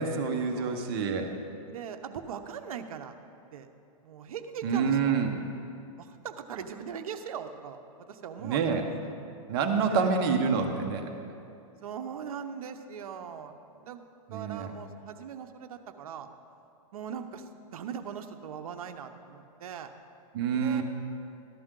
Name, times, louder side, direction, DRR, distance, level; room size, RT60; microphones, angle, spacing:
voice 1, 0.0-1.3 4.6-5.3 8.4-8.8 9.5-11.1 14.3-14.7 20.3-20.8, right 5 dB, 40° right, 4 dB, 1.1 m, -27 dB
voice 2, 1.7-3.1 3.5-3.7 4.0-5.1 6.0-9.1 9.9-10.2 11.8-14.0 14.3-16.3 16.9-19.9 20.5-20.8, right 7 dB, 75° right, 7 dB, 0.9 m, -40 dB
14.5 x 11.0 x 3.8 m, 2.6 s
hypercardioid pair, 160°, 19 cm